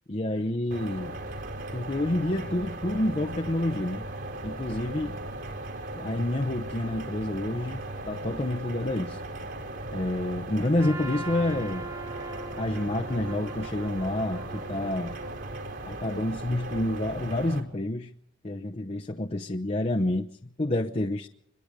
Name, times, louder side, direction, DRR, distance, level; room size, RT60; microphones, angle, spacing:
voice 1, 0.1-1.2 1.7-4.1 4.4-5.2 5.9-9.2 9.9-11.9 12.6-15.2 15.9-18.1 18.4-21.3, left 1 dB, 30° left, 0.8 m, -29 dB
sound 1, 0.7-17.6, right 2 dB, 60° right, 4.7 m, -37 dB
Trumpet, 10.8-15.9, right 3 dB, 15° right, 1.2 m, -42 dB
25.0 x 22.0 x 5.2 m
head